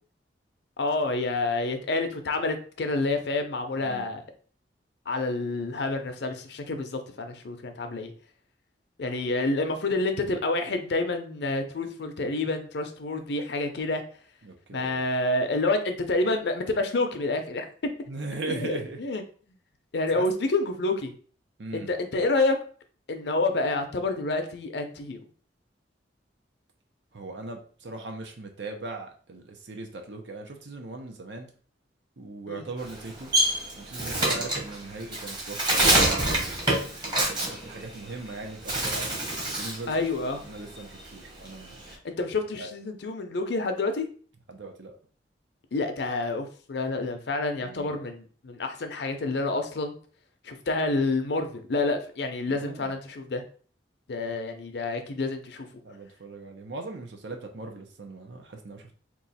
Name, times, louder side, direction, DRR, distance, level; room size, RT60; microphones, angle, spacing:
voice 1, 0.8-4.2 5.1-8.1 9.0-14.0 14.7-17.7 18.5-19.2 19.9-21.1 21.7-22.6 23.1-25.2 32.5-32.6 39.9-40.4 42.0-44.1 45.7-50.0 50.4-53.4 54.1-55.7, left 2 dB, 65° left, 6 dB, 0.6 m, -28 dB
voice 2, 3.7-4.1 14.4-15.0 18.1-19.0 20.1-20.3 21.6-21.9 27.1-31.5 32.2-33.3 33.8-40.0 40.4-41.8 42.6-42.7 44.5-44.9 47.6-48.0 52.5-53.0 55.8-58.9, right 3 dB, 75° right, 4 dB, 0.7 m, -39 dB
Bird, 32.8-38.3 38.6-39.9 40.2-41.9, right 1 dB, 25° right, 1.0 m, -26 dB
3.0 x 2.4 x 4.1 m, 0.43 s
head